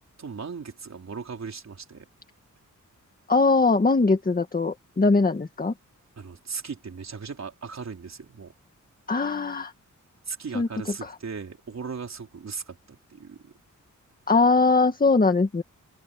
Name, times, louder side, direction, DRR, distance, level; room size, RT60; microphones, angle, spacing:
voice 1, 0.2-2.1 6.2-8.5 10.3-13.5, right 5 dB, 55° right, 4.2 m, -37 dB
voice 2, 3.3-5.7 9.1-9.7 10.5-10.7 11.0-11.1 14.3-15.6, left 3 dB, 30° left, 1.9 m, -21 dB
open air
wide cardioid pair, 135°, 31 cm